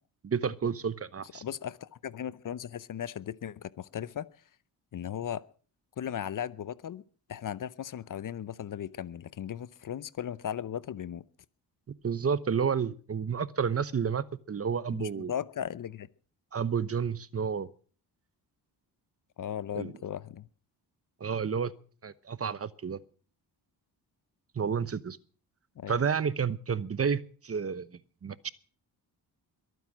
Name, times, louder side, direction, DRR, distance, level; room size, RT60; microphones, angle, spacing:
voice 1, 0.2-1.4 12.0-15.3 16.5-17.7 19.7-19.9 21.2-21.7 22.0-23.0 24.5-25.2 25.9-27.9 28.2-28.5, right 6 dB, 35° right, 1.0 m, -30 dB
voice 2, 1.3-4.3 4.9-5.4 6.0-7.0 7.3-11.2 14.9-16.1 19.4-20.5 25.8-25.9, left 9 dB, 50° left, 0.8 m, -37 dB
22.5 x 9.3 x 6.2 m
cardioid pair, 85°, 40 cm